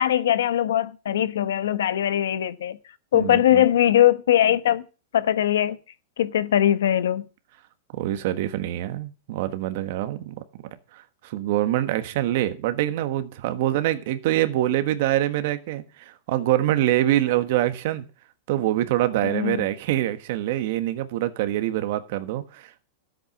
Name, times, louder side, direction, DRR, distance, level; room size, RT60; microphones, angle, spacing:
voice 1, 0.0-2.8 3.1-4.8 5.1-5.8 6.2-7.3 19.2-19.7, left 11 dB, 90° left, 1.1 m, -21 dB
voice 2, 3.1-3.6 7.9-10.4 10.9-18.0 18.5-22.8, right 13 dB, 55° right, 1.4 m, -25 dB
13.5 x 8.1 x 6.0 m
supercardioid pair, 155°, 0 cm